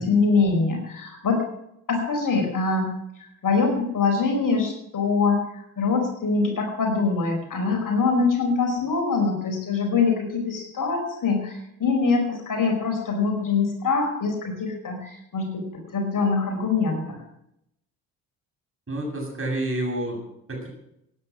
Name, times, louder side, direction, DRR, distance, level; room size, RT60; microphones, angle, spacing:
voice 1, 0.0-1.4 1.9-2.9 3.2-15.6 15.9-17.2, left 4 dB, 45° left, 2 dB, 4.9 m, -24 dB
voice 2, 18.9-20.2 20.5-20.7, right 1 dB, 30° right, 0 dB, 7.6 m, -29 dB
17.0 x 9.8 x 6.3 m, 0.79 s
hypercardioid pair, 50°, 45 cm